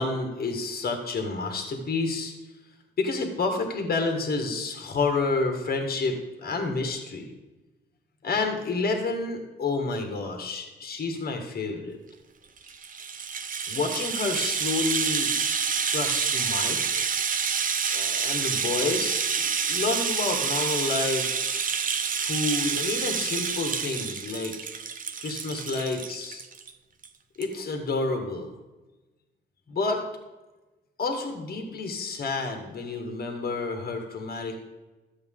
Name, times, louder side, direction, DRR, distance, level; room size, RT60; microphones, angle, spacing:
voice 1, 0.0-2.3 3.0-7.2 8.2-12.0 13.7-15.3 15.9-17.1 17.9-21.5 22.2-24.6 25.2-26.4 27.4-28.5 29.7-30.0 31.0-34.7, left 3 dB, 50° left, 3 dB, 1.8 m, -29 dB
Rattle (instrument), 12.6-26.7 27.0-27.1 27.4-27.5, right 6 dB, 45° right, 0.7 m, -28 dB
12.5 x 7.7 x 3.8 m, 1.1 s
cardioid pair, 90°, 20 cm